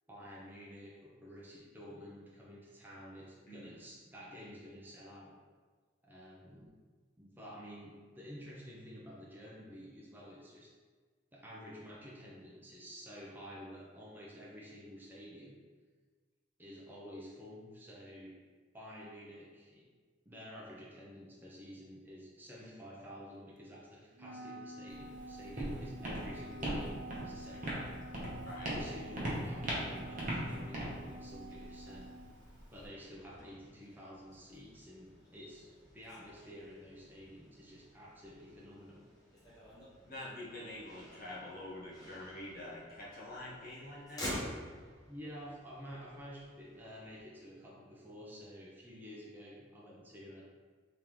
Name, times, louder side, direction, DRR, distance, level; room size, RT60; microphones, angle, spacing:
voice 1, 0.1-5.3 6.0-6.7 7.2-10.7 11.3-15.6 16.6-18.3 18.7-19.8 20.3-28.0 28.7-32.1 32.4-35.7 35.9-39.1 45.1-50.4, equal, 10° right, -5 dB, 0.6 m, -50 dB
Wind instrument woodwind instrument, 24.2-32.3, right 1 dB, 85° right, 0.4 m, -49 dB
Walk footsteps, 24.9-32.9, right 1 dB, 45° right, 0.9 m, -40 dB
voice 2, 28.4-28.7 40.1-44.4, left 1 dB, 50° left, -6 dB, 1.0 m, -46 dB
Motor vehicle (road), 31.4-47.2, equal, 20° left, 1.1 m, -50 dB
3.7 x 3.5 x 3.1 m, 1.5 s
head